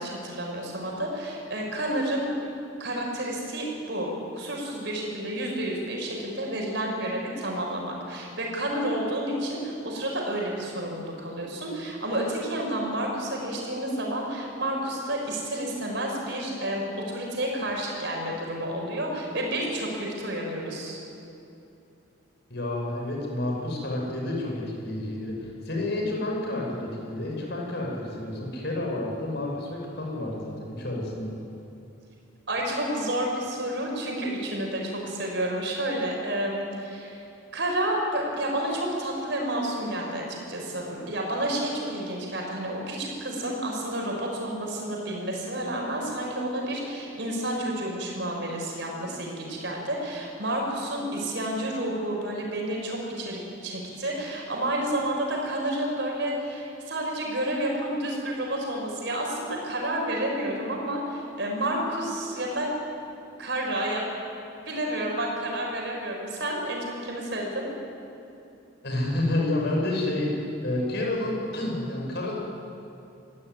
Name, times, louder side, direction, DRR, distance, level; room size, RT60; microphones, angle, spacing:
voice 1, 0.0-2.3 2.8-21.0 32.5-37.2 37.5-62.7 63.4-64.0 64.6-67.7, right 1 dB, 60° right, -1 dB, 6.3 m, -30 dB
voice 2, 22.5-31.3 68.8-72.4, left 1 dB, 55° left, -1 dB, 6.4 m, -29 dB
24.0 x 16.0 x 9.7 m, 2.7 s
head